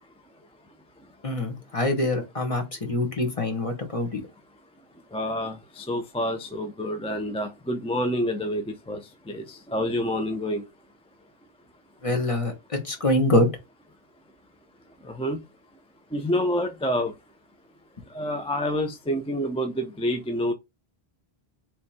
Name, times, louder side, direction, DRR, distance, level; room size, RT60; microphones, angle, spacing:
voice 1, 1.2-4.2 12.0-13.5, left 1 dB, 35° left, 1.2 m, -25 dB
voice 2, 5.1-10.6 15.0-15.4 16.1-17.1 18.1-20.5, equal, 10° left, 0.4 m, -28 dB
3.4 x 3.1 x 4.2 m
omnidirectional pair, 1.0 m